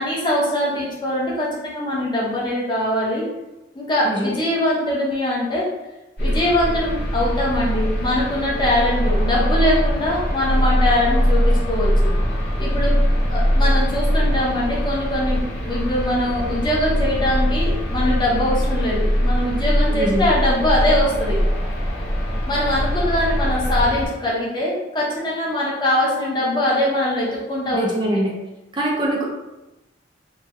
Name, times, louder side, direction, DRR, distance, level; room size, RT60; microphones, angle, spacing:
voice 1, 0.0-3.2 3.7-5.6 6.2-12.1 12.6-12.9 13.3-15.4 15.7-21.4 22.4-28.2, left 1 dB, 25° left, -6 dB, 0.9 m, -22 dB
voice 2, 4.0-4.4 19.9-20.3 27.7-28.4 28.7-29.2, right 1 dB, 25° right, -3 dB, 0.5 m, -23 dB
sound 1, 6.2-24.1, equal, 70° left, 1.5 m, -21 dB
3.4 x 2.2 x 3.1 m, 1.0 s
head